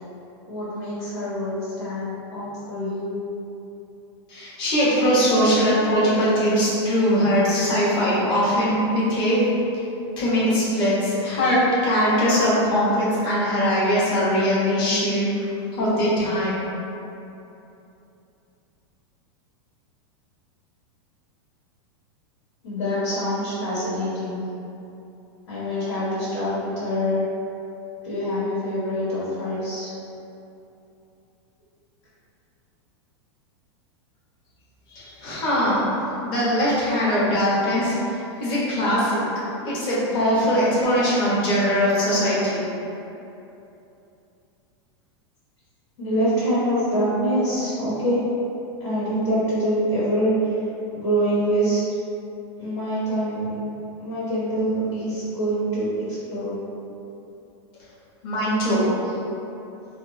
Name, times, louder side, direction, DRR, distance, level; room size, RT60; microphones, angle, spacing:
voice 1, 0.5-3.1 22.6-24.4 25.5-27.2 28.0-29.9 46.0-48.2 48.8-50.6 50.9-51.8 52.6-53.6 54.0-55.9 56.3-56.6, equal, 85° left, -11 dB, 1.3 m, -25 dB
voice 2, 4.3-9.4 9.7-9.8 10.2-16.6 34.9-35.9 36.2-39.2 39.6-42.6 57.8-57.9 58.2-59.1, equal, 35° left, -8 dB, 1.0 m, -21 dB
3.3 x 2.0 x 3.1 m, 2.8 s
supercardioid pair, 155°, 15 cm